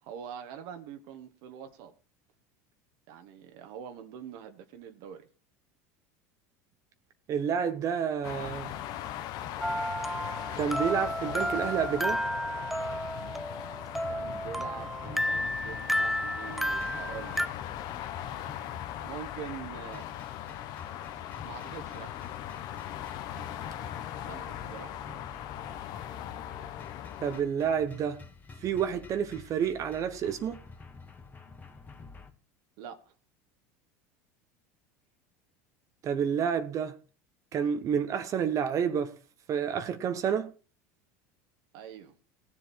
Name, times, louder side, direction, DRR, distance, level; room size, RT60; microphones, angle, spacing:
voice 1, 0.0-1.9 3.1-5.3 14.1-17.5 19.0-20.1 21.4-22.1 24.2-24.9 32.8-33.1 41.7-42.1, right 8 dB, 65° right, 1.6 m, -44 dB
voice 2, 7.3-8.7 10.6-12.2 27.2-28.2 28.6-30.6 36.0-36.9 37.5-39.1 39.5-40.5, right 7 dB, 45° right, 1.1 m, -29 dB
sound 1, 8.2-27.4, left 11 dB, 60° left, 1.2 m, -39 dB
sound 2, 9.6-17.5, equal, ahead, 0.5 m, -32 dB
sound 3, 13.9-32.3, left 4 dB, 20° left, 2.0 m, -49 dB
17.0 x 7.5 x 4.6 m
supercardioid pair, 100°, 8 cm